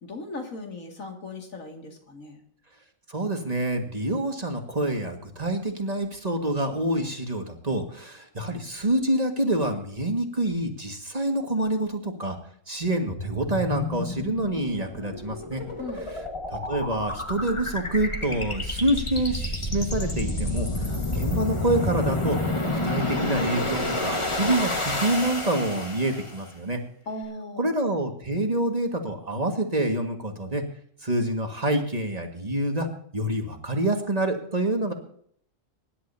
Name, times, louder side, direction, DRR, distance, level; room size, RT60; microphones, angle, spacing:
voice 1, 0.0-2.4 15.8-16.1 27.1-27.7, left 2 dB, 90° left, 2 dB, 2.8 m, -38 dB
voice 2, 3.1-12.4 12.7-15.6 16.5-22.4 22.7-26.8 27.6-30.6 31.0-32.9 33.1-34.9, right 1 dB, 30° right, 4 dB, 1.9 m, -27 dB
sound 1, 13.1-26.5, left 2 dB, 25° left, 1.6 m, -30 dB
24.0 x 11.0 x 2.8 m, 0.62 s
omnidirectional pair, 1.4 m